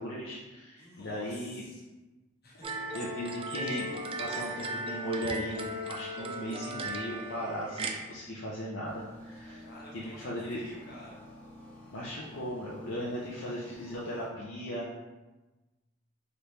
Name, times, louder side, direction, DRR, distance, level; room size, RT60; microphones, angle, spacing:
voice 1, 0.0-1.6 2.9-3.9 4.2-9.6 9.9-10.6 11.9-14.9, equal, 70° left, -5 dB, 0.6 m, -37 dB
voice 2, 0.8-1.9 2.4-2.8 9.6-11.3, left 1 dB, 55° left, -5 dB, 1.2 m, -50 dB
sound 1, 2.6-7.9, right 2 dB, 30° right, 0.4 m, -37 dB
sound 2, 8.8-14.3, left 1 dB, 10° left, 0.8 m, -50 dB
4.0 x 3.0 x 3.3 m, 1.1 s
head